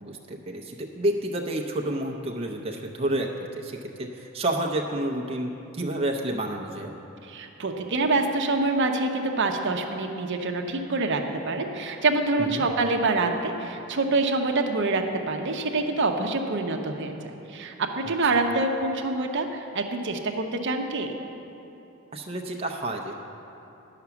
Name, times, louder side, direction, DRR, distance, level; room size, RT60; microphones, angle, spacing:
voice 1, 0.0-3.3 3.6-6.9 12.4-12.7 18.0-18.1 22.1-23.1, right 1 dB, 30° right, 1 dB, 0.6 m, -30 dB
voice 2, 7.2-21.1, right 3 dB, 60° right, 4 dB, 0.7 m, -26 dB
11.0 x 5.9 x 7.0 m, 3.0 s
head